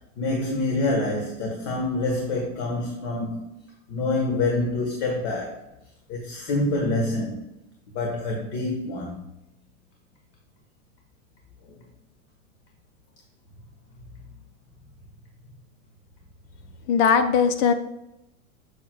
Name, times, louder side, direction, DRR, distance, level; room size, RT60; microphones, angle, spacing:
voice 1, 0.2-3.4 3.9-5.6 6.1-7.5 7.9-9.2 11.7-11.8, left 2 dB, 50° left, 0 dB, 1.4 m, -26 dB
voice 2, 16.9-17.7, left 6 dB, 25° left, 10 dB, 0.3 m, -19 dB
6.9 x 6.3 x 2.3 m, 0.90 s
hypercardioid pair, 110°, 42 cm